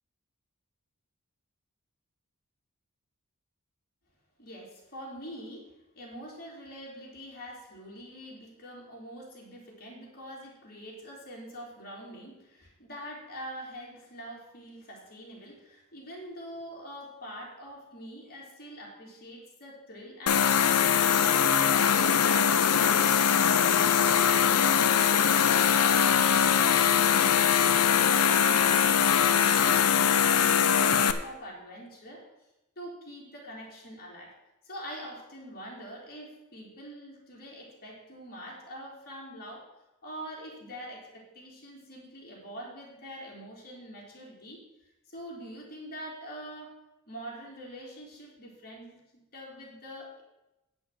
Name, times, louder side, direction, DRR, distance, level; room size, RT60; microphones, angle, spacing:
voice 1, 4.4-5.6 5.9-27.2 28.0-32.2 32.7-34.3 34.6-39.7 40.0-44.6 45.1-46.7 47.1-49.0 49.3-50.2, equal, 45° left, -3 dB, 3.4 m, -44 dB
sound 1, 20.3-31.1, left 8 dB, 90° left, 0.7 m, -22 dB
9.2 x 6.1 x 7.6 m, 0.94 s
head